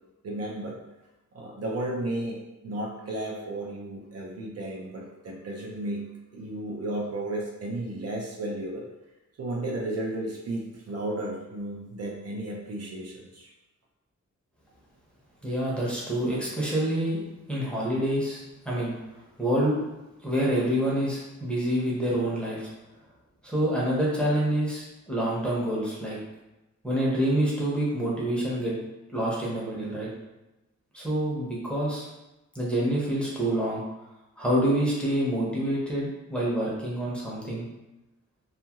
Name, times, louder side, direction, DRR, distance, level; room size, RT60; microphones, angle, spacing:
voice 1, 0.2-0.8 1.3-2.4 2.6-6.1 6.3-8.9 9.4-13.5, right 1 dB, 55° right, -1 dB, 0.5 m, -33 dB
voice 2, 15.4-17.2 17.5-18.9 19.4-19.7 20.2-22.7 23.4-26.2 26.8-28.7 29.1-30.1 30.9-32.1 32.5-33.8 34.4-37.7, right 1 dB, 5° left, -7 dB, 0.7 m, -27 dB
2.6 x 2.4 x 2.8 m, 1.0 s
wide cardioid pair, 150°, 30 cm